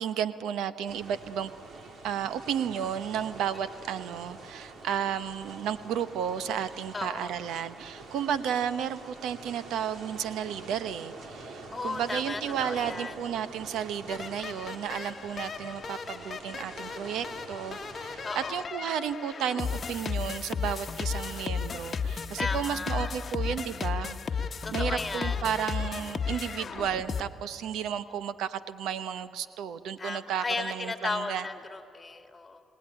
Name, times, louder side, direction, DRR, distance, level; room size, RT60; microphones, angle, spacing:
voice 1, 0.0-1.5 2.0-24.2 24.7-31.4, right 8 dB, 85° right, 13 dB, 0.9 m, -33 dB
sound 1, 0.9-18.6, right 3 dB, 60° right, 3.1 m, -46 dB
voice 2, 6.9-7.4 11.7-13.1 18.2-18.7 22.4-23.1 24.6-25.4 30.0-32.6, left 3 dB, 25° left, 6 dB, 2.3 m, -35 dB
sound 2, 14.1-27.2, left 6 dB, 40° left, 1.2 m, -34 dB
28.5 x 18.5 x 9.9 m, 2.6 s
cardioid pair, 90°, 0 cm